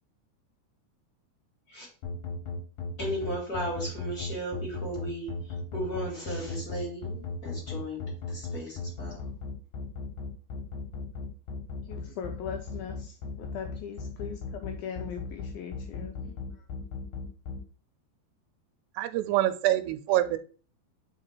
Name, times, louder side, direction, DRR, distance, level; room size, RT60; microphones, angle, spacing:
sound 1, 2.0-17.6, left 4 dB, 60° left, 2.6 m, -36 dB
voice 1, 3.0-8.0 8.3-9.2, right 1 dB, 30° left, -4 dB, 2.1 m, -36 dB
voice 2, 11.8-16.7, left 7 dB, 80° left, 3 dB, 2.2 m, -40 dB
voice 3, 19.0-20.4, right 14 dB, 85° right, 11 dB, 2.6 m, -25 dB
5.0 x 4.9 x 4.4 m, 0.39 s
omnidirectional pair, 4.8 m